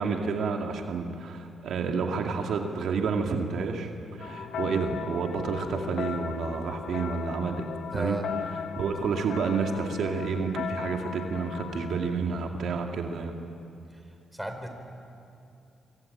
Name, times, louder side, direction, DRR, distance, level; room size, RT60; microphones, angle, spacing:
voice 1, 0.0-3.9 4.2-7.7 7.9-8.2 8.8-13.3, right 5 dB, 70° right, 3 dB, 2.3 m, -30 dB
sound 1, 4.2-12.1, left 7 dB, 75° left, 1.4 m, -37 dB
voice 2, 7.9-8.2 14.3-14.7, equal, 5° right, 5 dB, 4.4 m, -33 dB
25.0 x 24.5 x 8.9 m, 2.6 s
cardioid pair, 80°, 0 cm